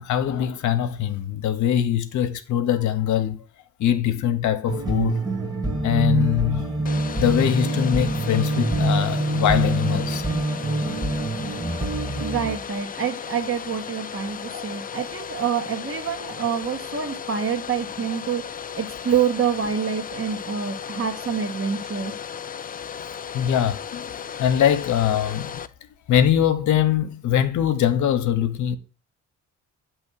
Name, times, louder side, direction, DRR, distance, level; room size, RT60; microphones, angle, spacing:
voice 1, 0.0-3.4 3.8-5.2 5.8-6.7 7.2-10.2 14.5-14.7 23.3-25.6 26.1-28.8, left 10 dB, 70° left, 0.9 m, -22 dB
sound 1, 4.7-12.6, right 2 dB, 15° right, 1.5 m, -25 dB
Domestic sounds home sounds, 6.8-25.7, left 7 dB, 30° left, 0.4 m, -36 dB
voice 2, 12.2-18.4 18.8-22.1, right 7 dB, 45° right, 1.5 m, -26 dB
7.9 x 3.2 x 6.3 m
cardioid pair, 90°, 30 cm